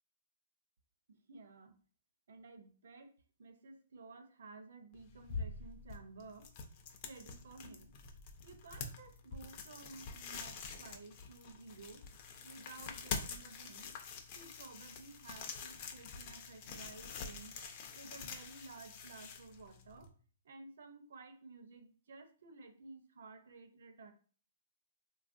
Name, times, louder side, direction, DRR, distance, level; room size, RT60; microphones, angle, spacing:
voice 1, 1.1-1.7 2.3-3.1 3.4-6.5 7.0-7.9 8.4-12.1 12.4-13.9 14.3-17.5 17.9-20.1 20.4-24.1, right 3 dB, 60° right, 7 dB, 0.6 m, -54 dB
sound 1, 4.9-20.1, left 5 dB, 30° left, 0.4 m, -46 dB
3.3 x 2.3 x 2.5 m, 0.41 s
hypercardioid pair, 170°, 0 cm